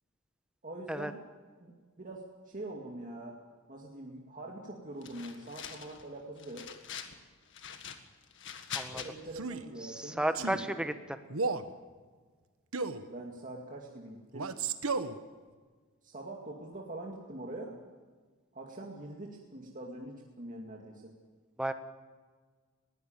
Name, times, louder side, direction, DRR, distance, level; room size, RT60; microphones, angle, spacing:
voice 1, 0.6-1.2 1.6-6.7 8.9-10.8 13.0-14.6 16.0-17.8 18.5-21.1, right 1 dB, 40° right, -1 dB, 2.4 m, -44 dB
sound 1, 5.0-6.0 6.4-7.2 7.5-9.1, left 8 dB, 60° left, 1.8 m, -43 dB
Male speech man speaking, 9.3-9.7 10.3-10.6 11.3-11.7 12.7-13.1 14.3-15.2, right 4 dB, 75° right, 1.2 m, -33 dB
voice 2, 9.8-11.2 21.6-21.7, right 1 dB, 5° right, 8 dB, 1.2 m, -33 dB
21.0 x 16.5 x 8.9 m, 1.5 s
head